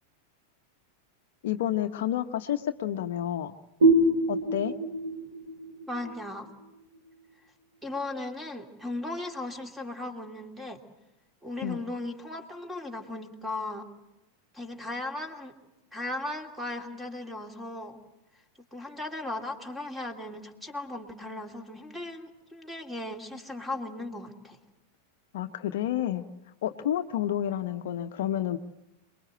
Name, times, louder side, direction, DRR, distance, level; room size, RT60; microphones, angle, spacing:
voice 1, 1.4-3.5 4.3-4.7 11.6-11.8 25.3-26.2 26.6-28.6, left 11 dB, 55° left, 9 dB, 0.9 m, -30 dB
sound 1, 3.8-7.2, right 1 dB, 65° right, 2.8 m, -26 dB
voice 2, 5.9-6.5 7.8-10.8 11.4-13.9 14.5-15.5 15.9-18.0 18.7-24.6, left 2 dB, 5° right, 6 dB, 2.8 m, -37 dB
28.0 x 21.5 x 7.8 m, 0.94 s
figure-of-eight pair, 90°, 0 cm